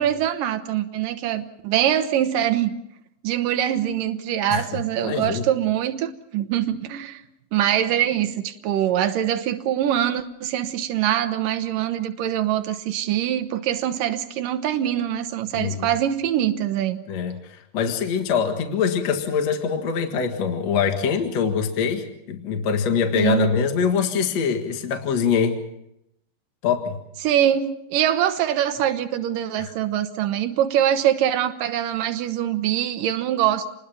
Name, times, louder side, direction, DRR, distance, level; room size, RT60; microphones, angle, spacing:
voice 1, 0.0-2.7 3.2-7.2 7.5-17.0 23.2-23.5 27.2-33.7, right 11 dB, 75° right, 9 dB, 2.1 m, -23 dB
voice 2, 5.0-5.5 15.5-15.9 17.1-25.6 26.6-27.0 29.6-29.7, left 6 dB, 55° left, 5 dB, 2.1 m, -24 dB
29.0 x 20.5 x 5.8 m, 0.79 s
omnidirectional pair, 5.2 m